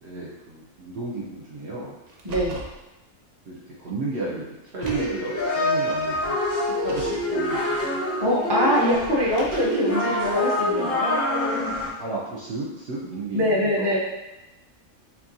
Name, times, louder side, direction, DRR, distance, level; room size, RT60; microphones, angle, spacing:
voice 1, 0.0-2.0 3.5-8.0 11.6-14.0, right 2 dB, 60° right, -5 dB, 0.9 m, -34 dB
Car, 2.1-2.8 3.9-4.0 4.7-5.3 6.6-7.3 9.1-9.9, right 3 dB, 90° right, 0.3 m, -39 dB
voice 2, 2.2-2.6 8.2-11.2 13.3-14.0, equal, 25° right, -6 dB, 0.7 m, -23 dB
sound 1, 4.8-11.9, left 1 dB, 15° left, 0.5 m, -25 dB
4.4 x 2.8 x 2.6 m, 1.0 s
omnidirectional pair, 1.4 m